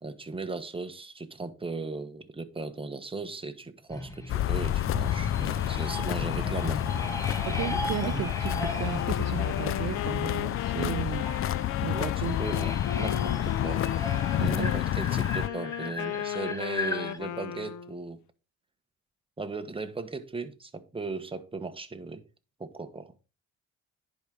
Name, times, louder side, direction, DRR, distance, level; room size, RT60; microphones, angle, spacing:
voice 1, 0.0-6.8 8.0-8.3 11.9-13.9 14.4-18.2 19.4-22.2 22.6-23.1, right 3 dB, 20° right, 1.3 m, -37 dB
sound 1, 3.9-17.2, left 1 dB, 10° left, 1.7 m, -38 dB
sound 2, 4.3-15.5, left 12 dB, 45° left, 0.4 m, -29 dB
voice 2, 7.5-11.3 11.8-12.4 14.4-14.7, right 13 dB, 60° right, 0.5 m, -34 dB
Wind instrument woodwind instrument, 8.7-14.9 15.4-18.0, left 11 dB, 75° left, 0.7 m, -37 dB
10.5 x 5.2 x 4.8 m
cardioid pair, 90°, 30 cm